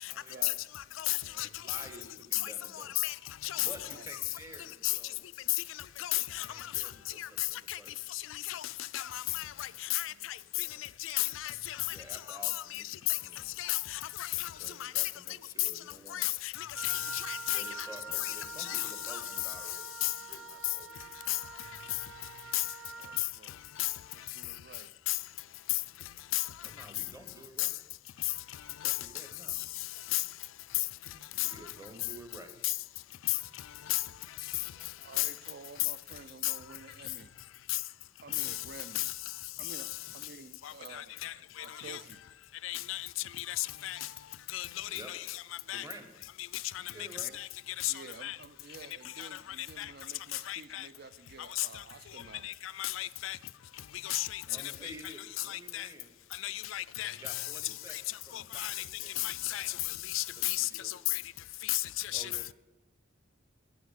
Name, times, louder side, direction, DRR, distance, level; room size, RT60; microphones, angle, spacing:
voice 1, 0.1-0.5 1.6-3.0 3.6-5.2 6.5-7.9 11.9-13.5 14.5-16.3 17.5-21.1 26.6-27.8 28.7-29.6 31.1-32.6 44.8-45.1 45.7-46.1 46.8-47.3 54.4-56.1 57.1-59.9 60.4-61.2 62.1-62.5, right 1 dB, 15° right, 1.2 m, -51 dB
voice 2, 1.0-1.5 2.4-2.5 3.0-3.1 3.4-3.7 4.8-4.9 6.0-6.5 7.2-7.3 7.7-7.8 8.1-8.2 8.5-8.6 8.9-10.1 11.0-11.8 12.7-12.8 13.6-14.5 14.8-15.0 16.1-16.5 16.8-17.6 18.2-18.8 19.1-19.2 20.0-20.1 21.3-21.4 22.5-22.6 23.8-23.9 25.1-25.2 26.3-26.4 27.6-27.7 28.8-28.9 30.1-30.2 31.4-31.5 32.6-32.7 33.9-34.0 35.2-35.3 36.4-36.5 38.4-38.5 39.0-39.1 40.9-41.3 41.9-42.0 42.6-43.1 43.4-44.0 44.5-45.4 45.7-45.8 47.3-47.5 47.8-47.9 48.2-48.4 49.2-49.3 49.8-49.9 50.5-50.9 51.6-51.7 52.4-53.4 54.0-54.4 55.5-55.9 56.4-57.4 58.3-58.7 59.2-59.7 60.1-61.2 61.6-61.8 62.1-62.3, left 18 dB, 75° left, 0.4 m, -33 dB
voice 3, 10.1-10.9 22.9-23.6 24.1-24.9 34.7-37.3 38.2-39.1 39.6-41.1 41.6-42.2 45.6-45.7 47.2-47.3 47.9-52.5, right 4 dB, 50° right, 0.5 m, -51 dB
Wind instrument woodwind instrument, 16.7-23.3, right 4 dB, 85° right, 0.9 m, -45 dB
11.0 x 9.2 x 6.6 m
head